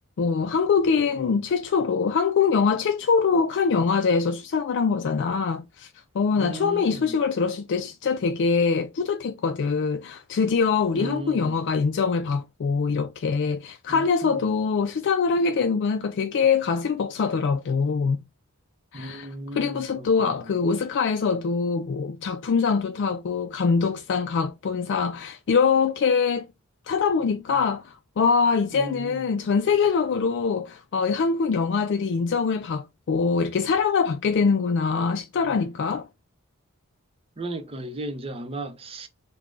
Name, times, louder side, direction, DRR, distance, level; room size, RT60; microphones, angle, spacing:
voice 1, 0.2-5.9 6.1-18.2 18.9-26.5 26.9-36.1, left 5 dB, 55° left, 0.4 m, -23 dB
voice 2, 6.4-7.2 10.9-11.6 13.9-14.5 18.9-20.6 28.7-29.3 37.4-39.1, right 1 dB, 25° right, 0.7 m, -35 dB
3.2 x 2.2 x 3.7 m
head